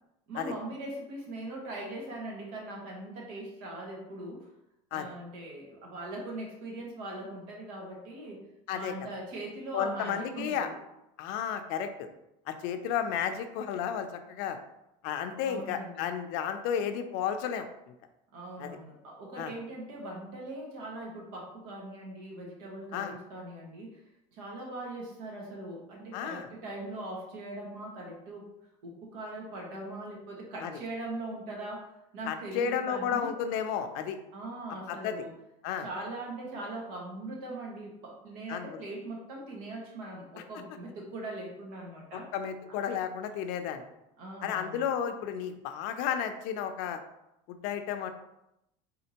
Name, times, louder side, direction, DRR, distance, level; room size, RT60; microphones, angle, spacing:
voice 1, 0.3-4.5 4.9-8.4 8.7-10.7 15.4-16.1 18.3-24.0 24.3-28.5 28.8-33.3 34.3-35.3 35.8-42.3 42.7-42.8 44.2-44.8, right 1 dB, 75° right, -1 dB, 1.5 m, -41 dB
voice 2, 9.7-10.7 11.2-12.1 12.5-14.6 15.0-17.6 18.6-18.8 19.4-19.5 22.9-23.1 26.1-26.5 30.6-30.7 32.3-34.2 34.9-35.2 35.6-35.9 38.5-38.8 42.1-43.8 44.4-47.0 47.5-48.1, left 8 dB, 65° left, 8 dB, 0.5 m, -32 dB
4.2 x 3.7 x 2.8 m, 0.86 s
supercardioid pair, 130°, 15 cm